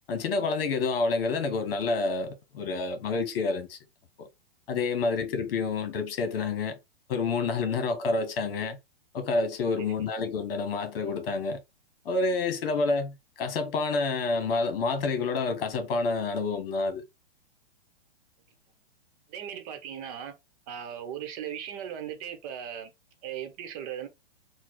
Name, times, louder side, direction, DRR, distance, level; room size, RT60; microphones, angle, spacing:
voice 1, 0.1-3.8 4.2-4.3 4.7-6.8 7.1-8.8 9.1-11.6 12.0-17.0, left 3 dB, 60° left, 1.4 m, -28 dB
voice 2, 19.3-20.3 20.7-22.9 23.2-24.1, right 9 dB, 40° right, 1.0 m, -38 dB
4.2 x 2.3 x 4.6 m
hypercardioid pair, 135°, 32 cm